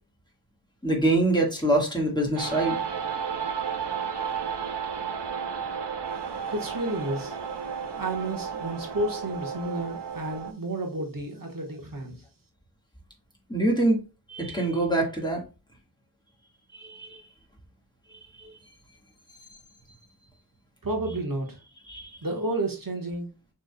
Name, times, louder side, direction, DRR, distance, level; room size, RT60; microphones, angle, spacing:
voice 1, 0.8-2.8 13.5-14.0 14.3-15.4 16.7-17.2 18.4-18.5 21.9-22.2, right 1 dB, 10° left, 1.6 m, -25 dB
sound 1, 2.4-10.5, right 7 dB, 80° right, 0.8 m, -33 dB
voice 2, 6.5-7.4 8.0-12.2 20.8-21.6 22.2-23.5, right 2 dB, 55° right, 1.4 m, -31 dB
6.5 x 3.5 x 2.2 m
wide cardioid pair, 70°, 41 cm